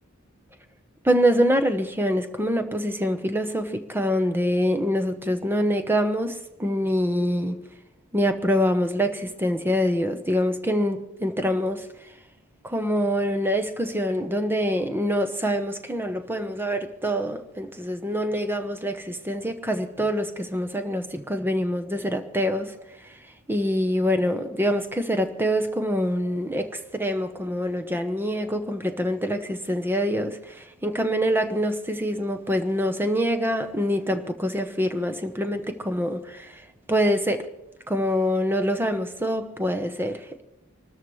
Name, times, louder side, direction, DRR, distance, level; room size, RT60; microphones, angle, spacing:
voice 1, 1.0-7.6 8.1-12.1 12.6-23.2 23.5-37.5 37.9-40.4, equal, 10° right, 1.0 m, -25 dB
26.5 x 13.0 x 3.2 m
head